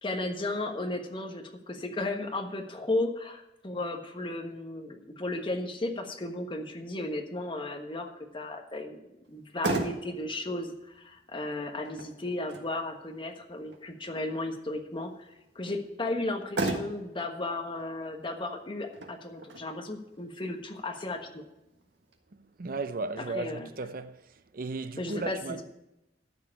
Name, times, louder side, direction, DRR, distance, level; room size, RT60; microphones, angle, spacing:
voice 1, 0.0-15.3 15.5-21.4 23.2-23.7 25.0-25.6, left 2 dB, 30° left, 1.3 m, -35 dB
Motor vehicle (road), 9.2-22.2, right 2 dB, 75° right, 1.6 m, -39 dB
voice 2, 22.6-24.2 24.5-25.6, right 3 dB, 50° right, 0.6 m, -35 dB
13.0 x 4.8 x 8.8 m
head